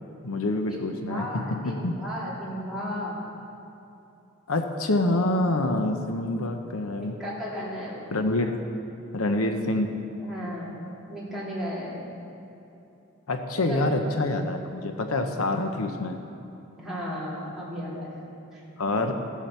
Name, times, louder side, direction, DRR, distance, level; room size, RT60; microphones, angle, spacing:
voice 1, 0.2-1.9 4.5-7.2 8.1-8.5 9.1-9.9 13.3-16.2 18.8-19.1, left 2 dB, 80° left, 5 dB, 0.8 m, -26 dB
voice 2, 1.1-3.2 6.9-8.1 10.2-12.3 13.7-13.9 16.8-18.2 18.5-18.6 19.0-19.1, equal, ahead, -8 dB, 3.3 m, -35 dB
15.0 x 7.4 x 6.8 m, 2.9 s
head